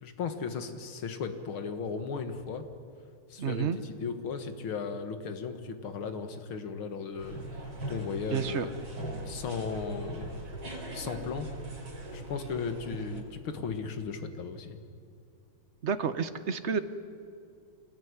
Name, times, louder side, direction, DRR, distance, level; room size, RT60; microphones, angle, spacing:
voice 1, 0.0-2.7 3.3-8.7 9.2-10.5 10.9-11.5 12.1-14.8, left 5 dB, 75° left, 8 dB, 2.5 m, -36 dB
voice 2, 3.4-3.8 8.3-8.7 15.8-16.8, right 6 dB, 45° right, 11 dB, 1.0 m, -30 dB
sound 1, 7.2-13.2, right 1 dB, 60° right, 5.2 m, -40 dB
26.5 x 20.0 x 9.7 m, 2.4 s
omnidirectional pair, 2.3 m